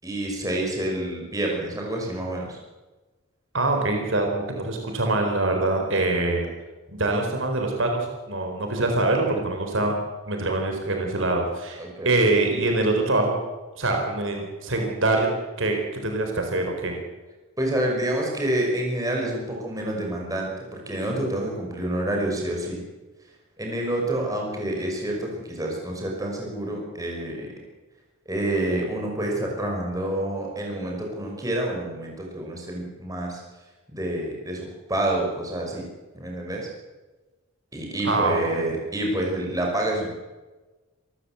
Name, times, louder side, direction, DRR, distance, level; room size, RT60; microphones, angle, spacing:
voice 1, 0.0-2.6 11.8-12.1 17.6-22.8 23.6-27.5 28.3-33.4 33.9-35.8 36.1-36.7 37.7-40.1, right 1 dB, 15° right, 0 dB, 5.8 m, -28 dB
voice 2, 3.5-6.5 6.9-10.0 10.3-13.4 13.7-15.3 15.6-15.8 16.0-17.0 38.0-38.7, right 2 dB, 60° right, 3 dB, 4.3 m, -24 dB
27.0 x 14.5 x 8.1 m, 1.2 s
head